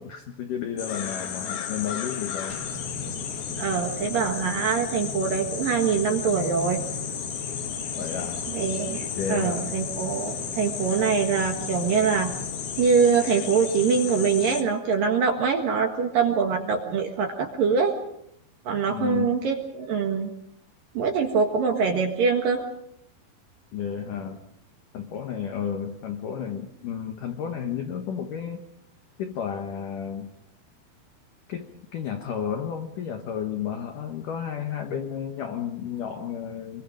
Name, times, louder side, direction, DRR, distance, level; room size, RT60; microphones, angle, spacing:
voice 1, 0.0-2.6 8.0-8.5 9.2-9.8 18.9-19.4 23.7-24.5 24.9-28.6 29.2-30.3 31.5-36.8, left 8 dB, 80° left, 5 dB, 1.8 m, -32 dB
sound 1, 0.8-14.6, left 8 dB, 60° left, 3.0 m, -33 dB
sound 2, 2.5-13.1, equal, 85° right, 5.0 m, -40 dB
voice 2, 3.6-6.8 8.5-12.3 12.8-18.0 18.7-20.3 20.9-22.6, right 5 dB, 60° right, 3 dB, 2.6 m, -24 dB
25.5 x 23.5 x 5.1 m, 0.75 s
omnidirectional pair, 5.8 m